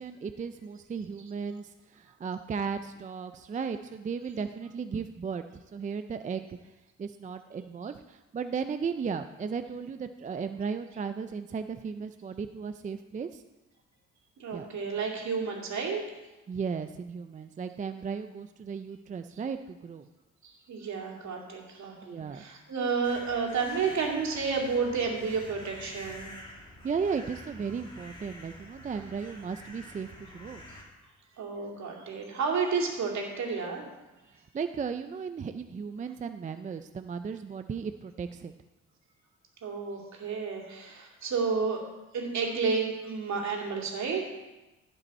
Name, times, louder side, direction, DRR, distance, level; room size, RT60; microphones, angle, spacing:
voice 1, 0.0-6.6 7.0-13.4 14.5-14.7 16.5-20.1 22.0-22.4 26.8-30.6 34.5-38.5, right 6 dB, 25° right, 9 dB, 0.4 m, -35 dB
voice 2, 14.4-16.0 20.4-26.3 31.4-33.9 39.6-41.8 42.1-44.3, right 5 dB, 65° right, 0 dB, 2.5 m, -31 dB
sound 1, 23.0-30.8, left 1 dB, 15° left, 2.2 m, -48 dB
15.5 x 5.4 x 4.2 m, 1.1 s
cardioid pair, 90°, 30 cm